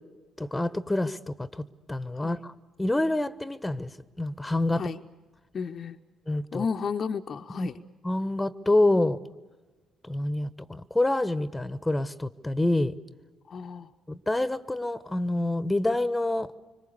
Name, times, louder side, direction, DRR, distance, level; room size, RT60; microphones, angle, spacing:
voice 1, 0.4-1.6 1.9-2.5 2.8-3.9 4.2-4.8 6.3-6.7 7.5-7.7 8.0-9.2 10.0-12.9 14.1-16.5, left 2 dB, 10° left, 17 dB, 1.0 m, -27 dB
voice 2, 5.5-6.0 6.5-7.8 13.5-13.9, left 6 dB, 45° left, 7 dB, 0.7 m, -33 dB
26.0 x 25.0 x 6.8 m, 1.3 s
figure-of-eight pair, 45°, 0 cm